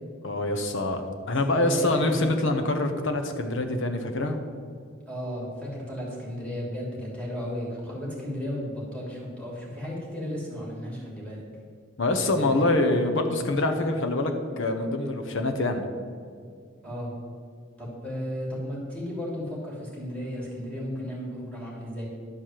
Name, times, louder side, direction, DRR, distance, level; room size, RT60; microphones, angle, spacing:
voice 1, 0.2-4.4 12.0-15.8, left 2 dB, 65° left, 5 dB, 1.0 m, -25 dB
voice 2, 1.5-2.4 5.1-11.4 12.1-13.2 16.8-17.1 17.8-22.1, equal, 5° left, -5 dB, 3.0 m, -34 dB
11.0 x 4.9 x 7.5 m, 2.2 s
head